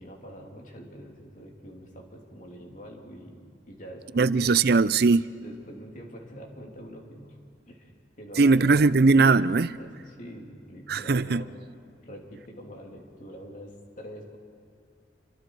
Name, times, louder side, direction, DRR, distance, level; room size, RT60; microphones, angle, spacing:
voice 1, 0.0-4.7 5.4-7.4 7.7-7.9 8.2-9.0 9.7-11.5 11.9-14.4, equal, 45° left, 1 dB, 3.1 m, -45 dB
voice 2, 4.2-5.3 8.4-9.8 10.9-11.4, right 4 dB, 55° right, 17 dB, 0.5 m, -20 dB
28.0 x 24.5 x 4.8 m, 2.3 s
head